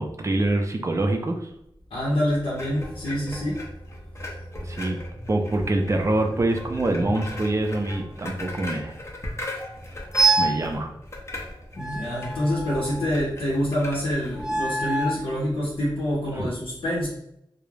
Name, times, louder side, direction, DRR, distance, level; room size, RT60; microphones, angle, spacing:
voice 1, 0.0-1.5 4.6-5.0 5.3-9.0 10.4-10.9 16.3-16.5, right 2 dB, 35° right, 3 dB, 0.4 m, -25 dB
voice 2, 1.9-3.6 11.7-17.1, equal, 85° left, -6 dB, 0.7 m, -26 dB
sound 1, 2.5-14.4, left 1 dB, 30° left, 0.5 m, -37 dB
sound 2, 10.1-10.6 11.8-13.0 14.4-15.2, right 3 dB, 5° right, 0.7 m, -25 dB
2.3 x 2.0 x 3.1 m, 0.77 s
wide cardioid pair, 75°, 9 cm